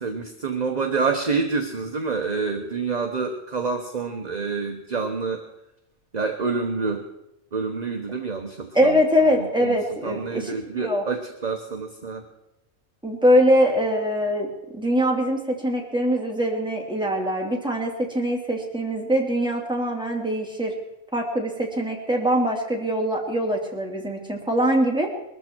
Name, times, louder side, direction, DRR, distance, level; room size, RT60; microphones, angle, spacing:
voice 1, 0.0-5.4 6.1-7.0 7.5-9.0 9.6-12.2, right 4 dB, 30° right, 4 dB, 1.1 m, -27 dB
voice 2, 8.7-11.0 13.0-14.5 14.7-20.7 21.1-25.1, equal, 5° right, -1 dB, 2.8 m, -23 dB
21.5 x 14.0 x 4.5 m, 0.88 s
omnidirectional pair, 1.5 m